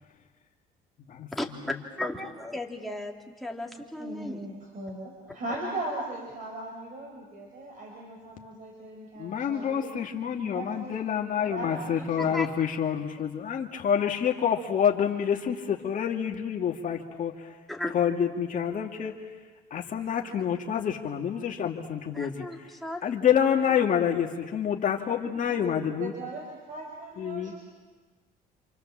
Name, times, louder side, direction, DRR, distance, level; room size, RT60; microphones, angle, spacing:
voice 1, 2.0-4.5 12.2-12.5 17.7-18.0 22.1-23.0 25.6-25.8, left 1 dB, ahead, 0 dB, 3.0 m, -35 dB
voice 2, 4.0-10.0 10.4-11.0 11.4-12.4 26.0-27.6, right 2 dB, 50° right, 1 dB, 4.8 m, -38 dB
voice 3, 9.2-17.6 17.9-19.3 19.7-22.4 23.0-26.1 27.2-27.5, left 8 dB, 50° left, 1 dB, 2.1 m, -27 dB
29.0 x 27.5 x 7.4 m, 1.3 s
cardioid pair, 110°, 17 cm